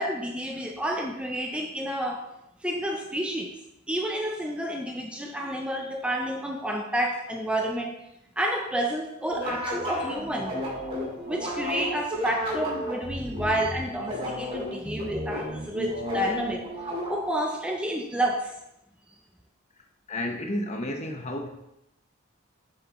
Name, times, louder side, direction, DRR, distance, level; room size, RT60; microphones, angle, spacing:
voice 1, 0.0-2.3 2.6-3.5 3.9-8.0 8.4-10.6 11.3-16.7 17.1-18.6, right 1 dB, 5° right, 2 dB, 0.5 m, -30 dB
sound 1, 9.3-17.4, equal, 30° right, 2.1 m, -33 dB
voice 2, 20.1-21.5, left 1 dB, 35° left, 4 dB, 0.9 m, -32 dB
7.8 x 6.6 x 3.0 m, 0.86 s
head